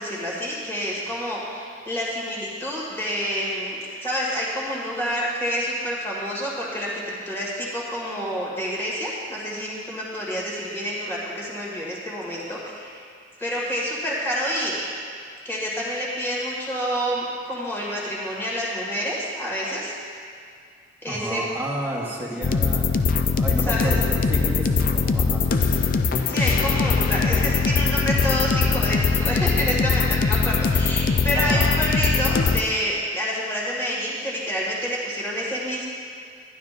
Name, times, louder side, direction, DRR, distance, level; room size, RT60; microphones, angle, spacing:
voice 1, 0.0-13.0 13.4-14.8 15.4-19.9 21.0-21.4 23.7-23.9 26.3-35.9, equal, 15° left, -5 dB, 1.8 m, -28 dB
voice 2, 21.1-22.9 23.3-25.8 31.3-31.7, right 1 dB, 10° right, -4 dB, 1.1 m, -31 dB
sound 1, 22.4-32.6, left 5 dB, 50° left, 0.4 m, -21 dB
12.0 x 11.0 x 2.5 m, 2.2 s
head